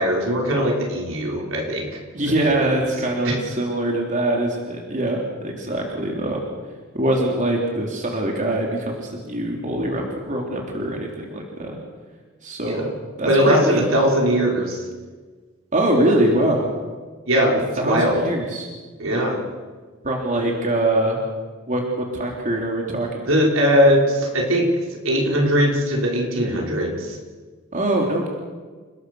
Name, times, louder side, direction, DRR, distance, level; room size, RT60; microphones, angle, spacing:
voice 1, 0.0-2.0 2.3-2.4 3.2-3.4 12.7-12.9 13.3-14.8 17.3-18.3 19.0-19.4 20.4-20.5 23.2-24.7 25.0-27.2, equal, 75° right, -1 dB, 5.7 m, -20 dB
voice 2, 2.1-6.4 6.9-11.8 12.4-12.8 13.2-13.8 15.7-16.7 17.8-18.7 20.0-21.2 21.7-21.8 22.1-23.3 27.7-28.3, right 1 dB, 40° right, 0 dB, 3.6 m, -23 dB
29.5 x 20.0 x 6.5 m, 1.4 s
head